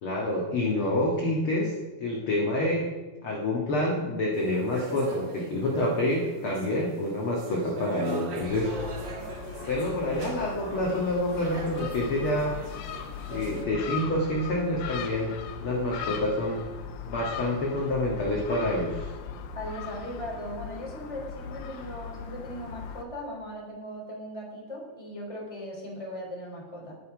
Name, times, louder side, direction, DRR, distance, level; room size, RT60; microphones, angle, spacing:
voice 1, 0.0-1.7 2.0-2.9 3.2-9.0 9.7-12.6 13.3-15.4 15.6-16.6 17.0-19.1, left 1 dB, 45° left, -2 dB, 2.0 m, -27 dB
sound 1, 4.3-13.6, right 2 dB, 50° right, 1.5 m, -41 dB
Gull seagull, 8.4-23.0, left 7 dB, 85° left, 2.8 m, -39 dB
voice 2, 19.5-26.9, equal, 10° left, -1 dB, 3.0 m, -38 dB
20.5 x 7.0 x 5.0 m, 1.3 s
omnidirectional pair, 4.3 m